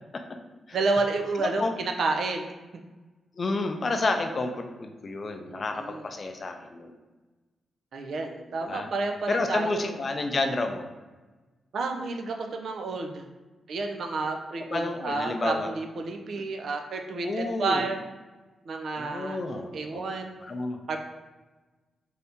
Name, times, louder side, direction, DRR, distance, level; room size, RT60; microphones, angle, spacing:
voice 1, 0.7-2.5 5.5-6.1 7.9-10.0 11.7-13.2 13.7-18.0 18.7-19.4 19.7-20.5 20.9-21.0, right 3 dB, 65° right, 4 dB, 0.4 m, -30 dB
voice 2, 1.4-1.7 3.4-7.0 8.6-8.9 9.3-10.9 14.7-15.7 17.2-17.8 19.0-20.1 20.4-20.8, left 3 dB, 40° left, 5 dB, 0.4 m, -30 dB
2.7 x 2.7 x 3.4 m, 1.2 s
cardioid pair, 95°, 0 cm